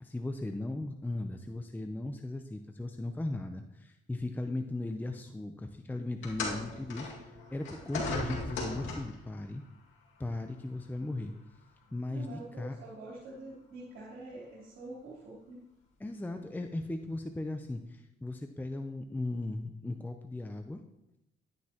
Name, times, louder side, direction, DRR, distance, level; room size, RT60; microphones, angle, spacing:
voice 1, 0.0-7.1 7.5-9.6 10.2-11.3 11.9-12.8 16.0-20.8, left 2 dB, 10° left, 6 dB, 0.6 m, -37 dB
sound 1, 6.2-9.3 10.3-10.4 11.3-11.4, left 3 dB, 75° left, 2.1 m, -37 dB
voice 2, 12.1-15.6, right 2 dB, 90° right, -8 dB, 3.4 m, -45 dB
11.5 x 9.6 x 2.9 m, 0.87 s
cardioid pair, 90°, 20 cm